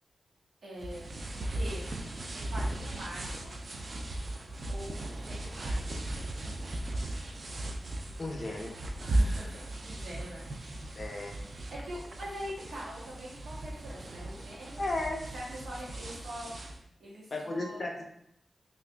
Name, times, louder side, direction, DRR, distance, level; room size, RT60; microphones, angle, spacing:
voice 1, 0.6-1.0 1.5-2.0 2.3-3.5 4.7-5.9 9.0-10.4 11.7-14.9 15.3-16.5 17.0-17.9, equal, 90° right, -6 dB, 1.1 m, -43 dB
sound 1, 0.8-16.8, right 1 dB, 40° right, 0.3 m, -36 dB
voice 2, 8.2-8.8 11.0-11.4 14.8-15.3 17.3-18.0, left 2 dB, 40° left, 1 dB, 0.5 m, -34 dB
2.8 x 2.4 x 3.3 m, 0.74 s
wide cardioid pair, 170°, 0 cm